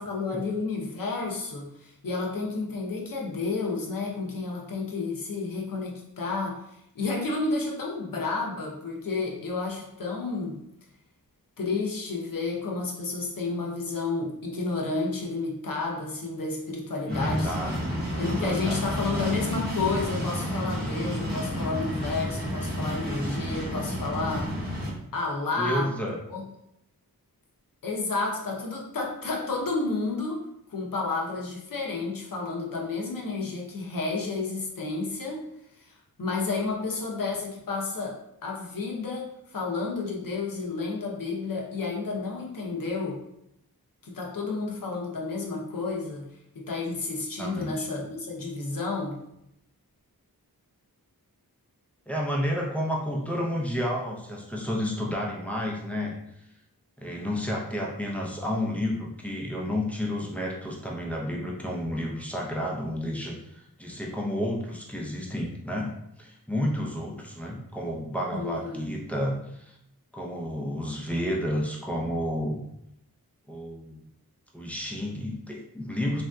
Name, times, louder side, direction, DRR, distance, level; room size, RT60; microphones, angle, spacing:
voice 1, 0.0-10.6 11.6-17.5 18.2-24.5 25.1-25.9 26.3-26.4 27.8-30.4 30.7-35.4 35.8-35.9 36.2-43.2 44.0-49.2 68.3-68.8, left 3 dB, 60° left, -1 dB, 0.8 m, -31 dB
voice 2, 17.1-18.8 25.6-26.2 47.4-47.9 52.1-56.1 57.0-69.8 70.1-72.6 73.5-74.0 74.5-76.2, equal, 5° left, -3 dB, 0.6 m, -31 dB
sound 1, 17.1-24.9, equal, 25° right, 1.0 m, -30 dB
3.3 x 2.6 x 2.3 m, 0.78 s
wide cardioid pair, 70°, 37 cm